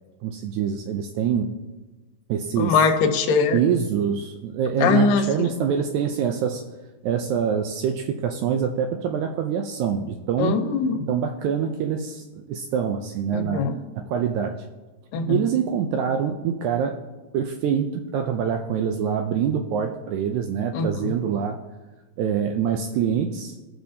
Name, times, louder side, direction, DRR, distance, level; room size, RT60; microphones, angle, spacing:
voice 1, 0.2-1.6 2.3-2.8 3.5-6.6 7.0-10.6 11.1-14.6 15.3-17.0 17.3-21.6 22.2-23.6, right 7 dB, 80° right, 5 dB, 1.8 m, -25 dB
voice 2, 2.6-3.6 4.8-5.5 10.4-11.0 13.3-13.7 15.1-15.4 20.7-21.1, left 5 dB, 80° left, 5 dB, 2.5 m, -21 dB
20.5 x 6.8 x 2.7 m, 1.2 s
omnidirectional pair, 3.8 m